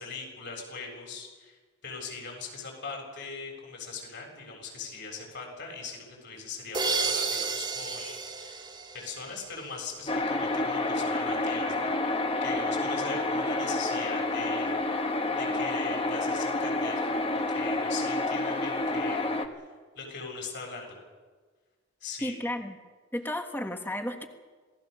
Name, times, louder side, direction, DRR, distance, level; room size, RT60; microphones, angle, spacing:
voice 1, 0.0-8.6 8.9-17.2 17.5-19.7 20.0-20.9 22.0-22.4, left 4 dB, 60° left, 0 dB, 7.5 m, -41 dB
sound 1, 6.7-9.6, right 4 dB, 20° right, 2.3 m, -31 dB
sound 2, 10.1-19.5, left 2 dB, 30° left, 1.5 m, -29 dB
voice 2, 22.2-22.8 23.1-24.3, left 1 dB, 10° left, 5 dB, 1.4 m, -33 dB
27.0 x 18.5 x 6.9 m, 1.4 s
head